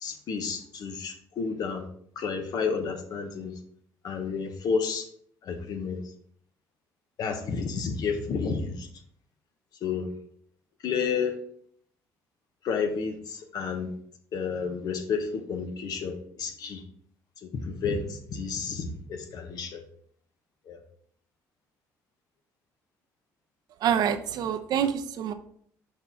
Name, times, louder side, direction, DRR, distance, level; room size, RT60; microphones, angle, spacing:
voice 1, 0.0-1.8 2.2-3.5 4.0-5.1 5.4-6.0 7.2-8.9 9.8-10.1 10.8-11.4 12.6-13.9 14.3-16.8 17.4-19.8 20.7-20.8, left 5 dB, 60° left, 6 dB, 1.1 m, -31 dB
voice 2, 23.8-25.3, right 8 dB, 65° right, 8 dB, 0.7 m, -26 dB
6.4 x 4.7 x 3.7 m, 0.64 s
supercardioid pair, 75°, 7 cm